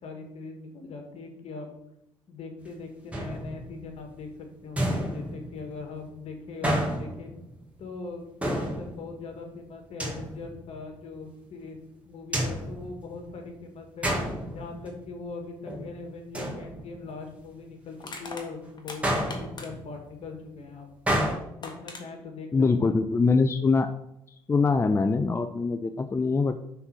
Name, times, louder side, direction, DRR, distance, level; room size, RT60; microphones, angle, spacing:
voice 1, 0.0-1.7 2.3-7.3 7.8-11.8 12.0-14.1 14.5-20.9 21.5-22.5 22.8-22.9, left 4 dB, 60° left, 4 dB, 1.6 m, -41 dB
sound 1, 3.1-3.9 4.8-5.8 6.6-7.6 8.4-9.3 10.0-10.7 12.3-13.5 14.0-15.1 15.4-15.9 16.3-17.2 19.0-20.0 21.1-21.3, right 1 dB, 10° right, 1.9 m, -30 dB
Crushing, 16.7-16.8 18.0-20.0 21.2-21.3 21.6-22.0, left 3 dB, 40° left, 1.4 m, -41 dB
voice 2, 22.5-23.9 24.5-26.6, left 4 dB, 25° left, 9 dB, 0.4 m, -23 dB
5.7 x 4.1 x 5.8 m, 0.82 s
supercardioid pair, 70°, 12 cm